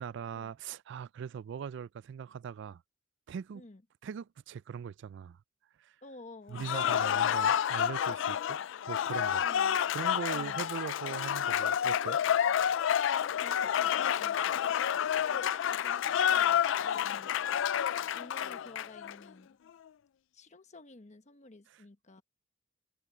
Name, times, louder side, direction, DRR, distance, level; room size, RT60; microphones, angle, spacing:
voice 1, 0.0-2.8 3.3-3.6 4.0-5.4 5.8-5.9 6.5-8.6 8.9-9.4 9.9-12.2 21.7-21.8, right 7 dB, 65° right, 0.3 m, -40 dB
voice 2, 6.0-6.7 9.4-9.8 10.3-10.7 13.1-14.6 15.2-17.3 18.1-19.6 20.3-22.2, left 2 dB, 40° left, 1.2 m, -52 dB
Cheering / Applause, 6.6-19.2, left 9 dB, 70° left, 0.4 m, -29 dB
open air
head